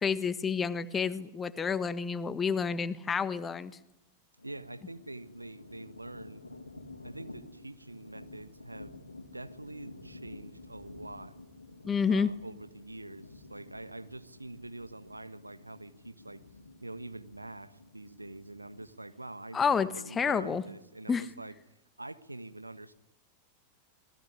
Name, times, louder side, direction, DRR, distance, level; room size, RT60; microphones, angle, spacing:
voice 1, 0.0-3.7 11.8-12.3 19.5-20.6 21.1-21.3, left 6 dB, 20° left, 14 dB, 1.4 m, -29 dB
sound 1, 4.4-18.9, left 2 dB, 80° left, 2.5 m, -51 dB
voice 2, 4.4-6.4 7.0-9.0 9.3-11.3 12.0-16.4 16.8-22.9, right 2 dB, 85° right, 12 dB, 1.4 m, -45 dB
26.0 x 21.0 x 10.0 m, 0.86 s
figure-of-eight pair, 90°, 0 cm